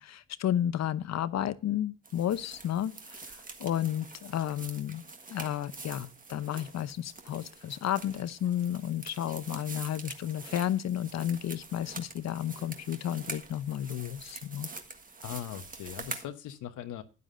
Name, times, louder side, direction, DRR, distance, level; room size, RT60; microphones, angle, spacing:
voice 1, 0.0-5.0 5.3-14.7, left 11 dB, 60° left, 0.8 m, -32 dB
sound 1, 2.0-16.3, right 3 dB, 25° right, 1.5 m, -45 dB
voice 2, 15.2-17.0, left 11 dB, 80° left, 1.1 m, -40 dB
12.5 x 9.6 x 2.6 m
cardioid pair, 90°, 30 cm